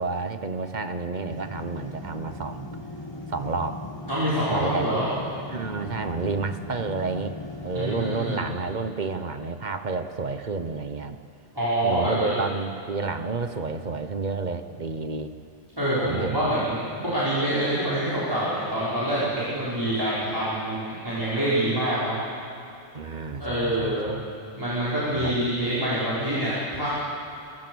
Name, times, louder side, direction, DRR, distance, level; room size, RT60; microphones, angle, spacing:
voice 1, 0.0-2.7 3.3-3.8 4.5-4.8 5.5-7.4 7.6-11.2 11.8-15.3 16.0-16.5 22.9-24.2 25.1-25.3, right 4 dB, 40° right, 9 dB, 1.1 m, -30 dB
sound 1, 1.3-8.4, left 1 dB, 20° left, 1.6 m, -38 dB
voice 2, 4.1-5.1 7.7-8.4 11.6-12.3 15.8-22.2 23.4-24.1 24.5-26.9, right 1 dB, 20° right, -10 dB, 5.3 m, -26 dB
25.5 x 22.0 x 6.3 m, 2.6 s
omnidirectional pair, 1.2 m